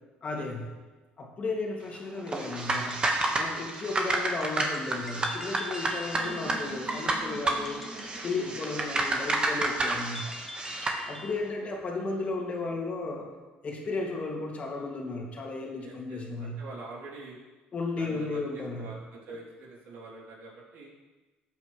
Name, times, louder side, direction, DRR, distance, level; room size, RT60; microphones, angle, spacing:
voice 1, 0.2-0.6 1.2-3.0 3.3-7.8 8.2-10.3 11.0-13.3 13.6-16.6 17.7-18.9, left 3 dB, 40° left, -1 dB, 2.5 m, -34 dB
sound 1, 2.3-11.0, right 2 dB, 25° right, 1.6 m, -30 dB
sound 2, 2.4-11.4, left 2 dB, 10° left, 0.9 m, -45 dB
sound 3, 6.2-10.2, right 2 dB, 50° right, 1.4 m, -45 dB
voice 2, 11.1-11.5 15.8-17.4 17.9-20.9, right 3 dB, 75° right, -4 dB, 3.4 m, -45 dB
14.0 x 8.3 x 3.3 m, 1.2 s
cardioid pair, 105°, 4 cm